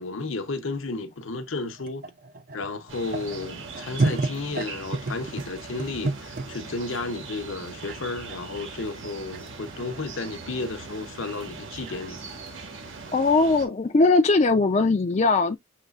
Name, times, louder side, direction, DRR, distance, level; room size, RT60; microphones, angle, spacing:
voice 1, 0.0-2.1 2.5-12.2, left 3 dB, 75° left, 0.8 m, -33 dB
sound 1, 1.8-6.5 7.0-7.2 7.9-13.1, right 3 dB, 45° right, 0.4 m, -31 dB
sound 2, 2.9-13.7, right 4 dB, 70° right, 1.5 m, -40 dB
voice 2, 13.1-15.6, left 3 dB, 35° left, 0.4 m, -20 dB
6.6 x 3.2 x 2.3 m
head